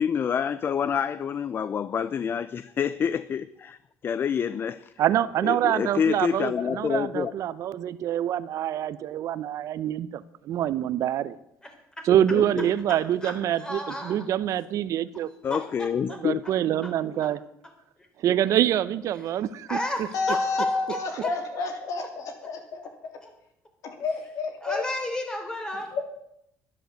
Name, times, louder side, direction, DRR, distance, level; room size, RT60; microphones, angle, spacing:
voice 1, 0.0-3.8 4.0-4.9 5.4-7.3 12.3-12.7 15.4-16.4, left 7 dB, 35° left, 16 dB, 0.5 m, -27 dB
voice 2, 5.0-11.4 12.0-15.3 16.1-17.4 18.2-20.1, right 11 dB, 60° right, 16 dB, 0.8 m, -26 dB
voice 3, 13.6-14.2 15.5-16.2 16.8-16.9 19.7-21.3 23.2-23.3 24.6-26.0, left 1 dB, 10° left, 4 dB, 3.7 m, -33 dB
voice 4, 20.1-23.1 23.8-24.8 25.9-26.1, left 4 dB, 60° left, 5 dB, 3.4 m, -30 dB
11.5 x 11.0 x 7.8 m, 0.77 s
cardioid pair, 115°, 6 cm